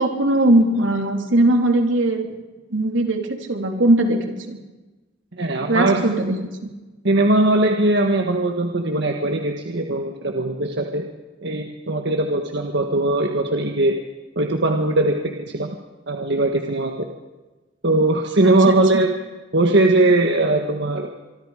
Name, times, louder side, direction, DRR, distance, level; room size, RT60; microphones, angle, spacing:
voice 1, 0.0-2.2 2.7-4.6 5.7-6.7 18.4-18.8, right 1 dB, 80° right, 4 dB, 3.2 m, -20 dB
voice 2, 5.3-6.0 7.0-11.0 11.4-13.9 14.3-15.7 16.1-17.1 17.8-19.1 19.5-21.1, right 2 dB, 60° right, 3 dB, 1.6 m, -20 dB
25.5 x 24.5 x 5.0 m, 1.2 s
head